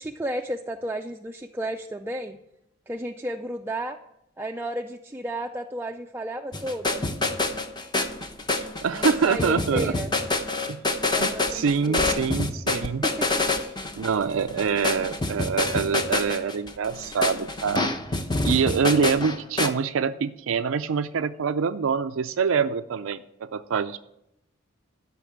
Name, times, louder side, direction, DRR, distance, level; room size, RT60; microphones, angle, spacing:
voice 1, 0.0-2.4 2.9-4.0 4.4-7.0 9.0-10.1 11.1-12.3 12.8-13.3, right 1 dB, 10° right, 4 dB, 0.4 m, -33 dB
sound 1, 6.5-19.7, left 2 dB, 20° left, 0.8 m, -27 dB
voice 2, 8.5-9.9 10.7-10.8 11.2-13.1 14.0-17.9 18.4-24.0, right 6 dB, 85° right, 9 dB, 0.4 m, -25 dB
12.5 x 5.9 x 8.5 m, 0.82 s
head